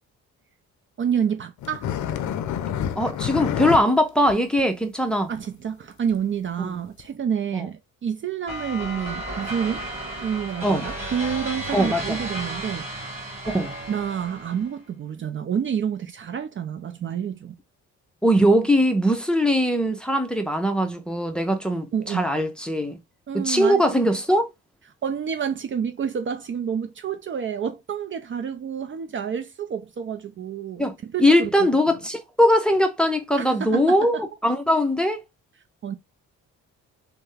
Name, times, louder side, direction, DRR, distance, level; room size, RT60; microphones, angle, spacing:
voice 1, 1.0-1.9 5.3-9.8 10.2-12.9 13.9-17.5 21.9-22.3 23.3-24.0 25.0-31.7 33.4-34.2 35.8-35.9, right 8 dB, 40° right, 0.5 m, -28 dB
sound 1, 1.6-3.8 4.2-4.3 4.6-4.7 5.3-5.4 6.1-6.2 7.0-7.1, left 9 dB, 70° left, 0.5 m, -28 dB
voice 2, 3.0-5.3 6.6-6.7 7.5-7.6 10.6-10.8 11.7-12.2 13.5-13.7 18.2-23.0 23.3-24.5 30.8-30.9 31.2-35.2, equal, 5° left, 0.7 m, -21 dB
sound 2, 8.5-14.7, right 1 dB, 25° right, 2.3 m, -33 dB
3.3 x 2.2 x 3.2 m
cardioid pair, 90°, 30 cm